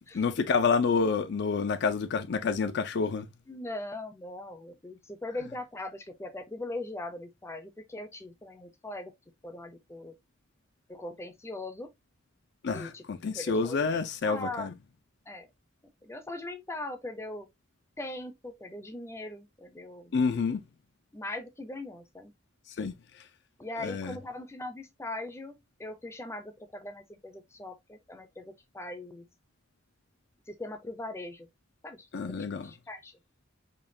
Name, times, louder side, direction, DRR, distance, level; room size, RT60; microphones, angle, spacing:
voice 1, 0.1-3.3 12.6-14.7 20.1-20.6 22.8-22.9 23.8-24.2 32.1-32.7, left 5 dB, 60° left, 0.4 m, -28 dB
voice 2, 3.5-9.1 9.4-10.1 10.9-11.9 12.7-13.0 13.3-14.7 15.3-15.5 16.0-17.5 18.0-20.1 21.1-22.3 22.7-22.8 23.6-29.3 30.5-31.5 31.8-33.1, left 2 dB, 15° left, 0.6 m, -40 dB
5.1 x 2.3 x 2.7 m
head